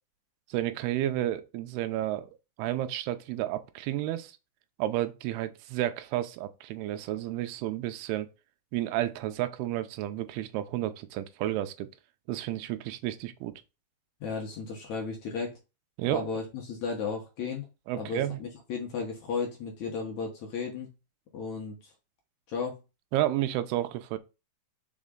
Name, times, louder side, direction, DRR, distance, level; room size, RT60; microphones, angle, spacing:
voice 1, 0.5-2.3 2.6-4.3 4.8-8.3 8.7-11.9 12.3-13.5 16.0-16.3 17.9-18.4 23.1-24.2, right 13 dB, 85° right, 2.7 m, -31 dB
voice 2, 14.2-15.5 16.1-17.7 17.9-20.9 21.3-21.9 22.5-22.8, left 5 dB, 60° left, 2.0 m, -34 dB
5.3 x 5.1 x 3.7 m
omnidirectional pair, 4.5 m